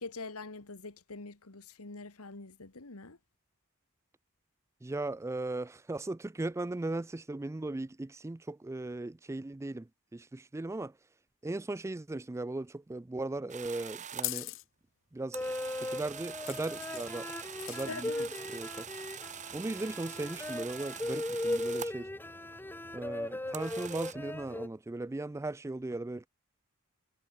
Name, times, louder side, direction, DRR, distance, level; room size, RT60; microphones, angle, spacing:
voice 1, 0.0-3.2 17.9-18.3, left 3 dB, 75° left, 1.8 m, -44 dB
voice 2, 4.8-11.0 11.4-14.5 15.1-15.4 15.8-17.3 17.7-18.1 18.5-18.9 19.5-22.1 22.9-26.3, right 2 dB, 15° right, 0.4 m, -37 dB
sound 1, 13.5-14.3 15.3-22.1 23.5-24.1, right 8 dB, 35° right, 1.1 m, -44 dB
sound 2, 13.6-14.6 16.5-17.1 17.5-18.1 18.4-18.8, left 18 dB, 60° left, 1.1 m, -40 dB
sound 3, 15.3-24.7, left 1 dB, 10° left, 0.8 m, -38 dB
head